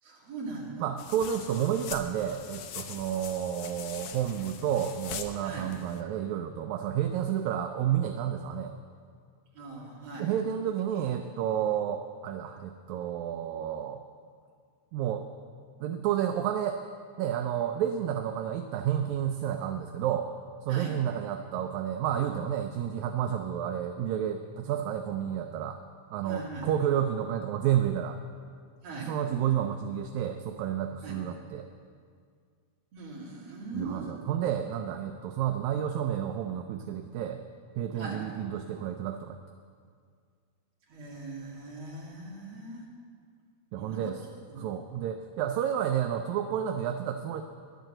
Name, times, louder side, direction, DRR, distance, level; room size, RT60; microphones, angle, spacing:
voice 1, 0.0-0.8 5.4-5.7 9.5-10.3 20.7-21.0 26.2-26.7 28.8-29.1 31.0-31.2 32.9-34.2 37.9-38.3 40.9-42.9 43.8-44.1 44.5-44.7, right 2 dB, 55° right, -5 dB, 3.4 m, -40 dB
voice 2, 0.8-8.7 10.2-14.0 14.9-15.3 15.8-16.8 17.2-20.3 20.6-25.8 26.1-28.2 29.0-31.7 33.7-37.4 37.8-39.4 43.7-44.2 44.6-47.4, right 10 dB, 80° right, 6 dB, 1.8 m, -30 dB
sound 1, 1.0-6.0, left 7 dB, 90° left, 2.3 m, -42 dB
11.5 x 9.1 x 7.7 m, 2.1 s
omnidirectional pair, 3.5 m